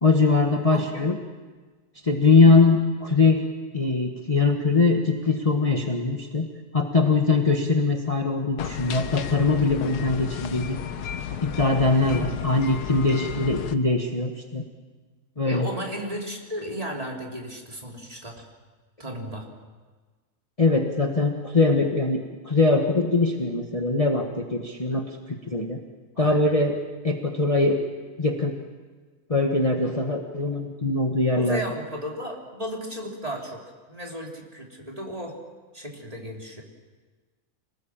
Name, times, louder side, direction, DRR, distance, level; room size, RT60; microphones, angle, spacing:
voice 1, 0.0-1.2 2.0-3.4 3.7-6.5 6.7-10.8 11.4-14.6 15.4-15.7 20.6-25.8 26.2-26.7 27.0-27.8 28.2-28.6 29.3-31.6, left 3 dB, 25° left, 2 dB, 1.4 m, -22 dB
voice 2, 0.7-1.0 12.0-12.4 15.5-18.5 19.0-19.5 24.9-25.0 26.1-26.5 31.3-33.6 33.9-35.4 35.7-36.6, equal, 25° right, -1 dB, 3.4 m, -34 dB
sound 1, 8.6-13.7, left 8 dB, 85° left, 1.5 m, -33 dB
26.5 x 19.5 x 7.4 m, 1.4 s
omnidirectional pair, 1.6 m